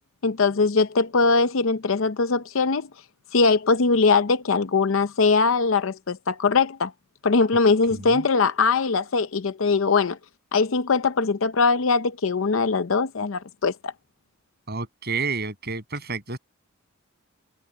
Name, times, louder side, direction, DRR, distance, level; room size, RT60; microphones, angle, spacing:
voice 1, 0.2-2.9 3.3-6.9 7.2-10.2 10.5-13.9, left 4 dB, 75° left, 0.7 m, -21 dB
voice 2, 7.9-8.2 14.7-16.4, right 4 dB, 50° right, 7.2 m, -30 dB
head